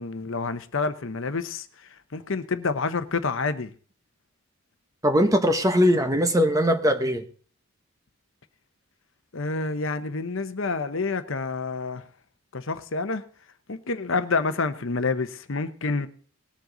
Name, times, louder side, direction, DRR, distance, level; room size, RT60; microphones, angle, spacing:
voice 1, 0.0-3.7 9.3-12.0 12.5-13.2 13.7-16.1, left 4 dB, 60° left, 0.9 m, -28 dB
voice 2, 5.0-7.2, equal, 15° right, 1.0 m, -20 dB
20.0 x 7.6 x 3.9 m
head